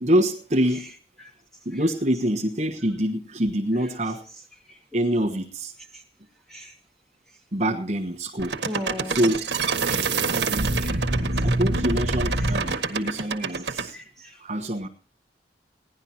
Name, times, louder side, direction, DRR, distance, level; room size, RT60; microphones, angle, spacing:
voice 1, 0.0-0.9 1.6-4.2 4.9-5.7 7.5-8.6 9.0-9.4 10.3-10.8 11.4-14.0 14.4-14.9, equal, 40° right, 2 dB, 1.3 m, -25 dB
sound 1, 8.4-13.9, right 3 dB, 85° right, 1.6 m, -25 dB
voice 2, 8.6-9.2 9.8-10.2 10.8-11.0 13.9-14.4, left 1 dB, ahead, -1 dB, 2.4 m, -37 dB
17.5 x 11.0 x 4.3 m, 0.39 s
head